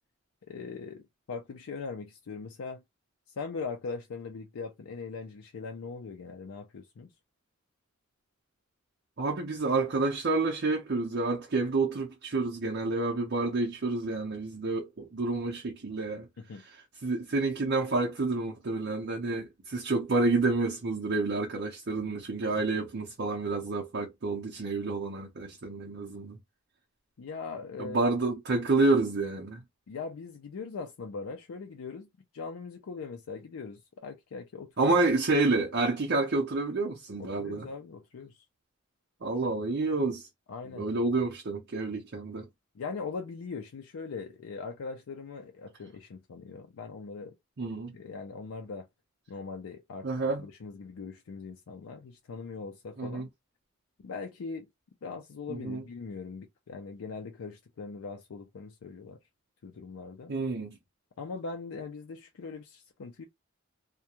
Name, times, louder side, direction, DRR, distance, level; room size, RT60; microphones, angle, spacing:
voice 1, 0.5-2.8 3.4-7.1 16.4-16.6 22.5-22.6 27.2-28.1 29.9-32.1 32.3-34.9 37.2-38.4 40.5-40.9 42.7-47.3 47.9-48.9 49.3-50.1 50.4-53.3 54.0-54.7 55.0-59.2 59.6-60.3 61.2-63.2, left 4 dB, 85° left, 0.4 m, -40 dB
voice 2, 9.2-16.3 17.0-26.4 27.8-29.6 34.8-37.7 39.2-40.3 40.8-42.5 47.6-48.0 50.0-50.4 53.0-53.3 55.5-55.8 60.3-60.8, right 3 dB, 55° right, 0.6 m, -29 dB
2.3 x 2.1 x 2.9 m
head